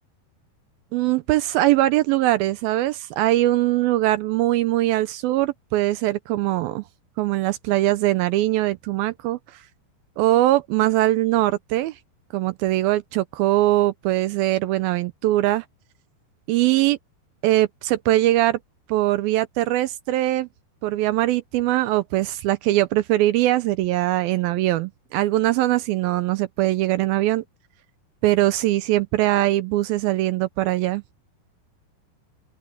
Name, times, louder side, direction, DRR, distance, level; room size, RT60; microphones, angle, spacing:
voice 1, 0.9-6.8 7.2-9.4 10.2-11.9 12.3-15.6 16.5-17.0 17.4-18.6 18.9-20.5 20.8-27.4 28.2-31.0, right 15 dB, 80° right, 2.2 m, -21 dB
open air
omnidirectional pair, 4.9 m